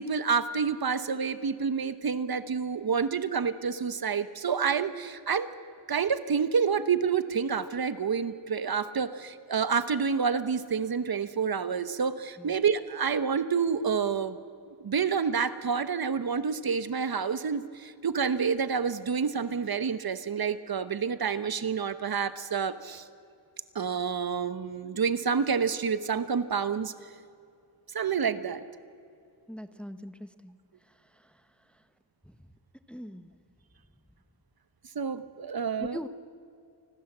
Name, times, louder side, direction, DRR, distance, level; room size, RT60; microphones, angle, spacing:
voice 1, 0.0-5.5 5.9-14.4 14.7-23.0 23.7-26.9 27.9-28.6 34.9-36.0, right 6 dB, 55° right, 13 dB, 1.2 m, -28 dB
voice 2, 29.5-30.6 31.2-31.3 32.9-33.3 35.8-36.1, equal, ahead, 10 dB, 1.0 m, -41 dB
29.0 x 20.0 x 7.4 m, 2.4 s
wide cardioid pair, 125°, 44 cm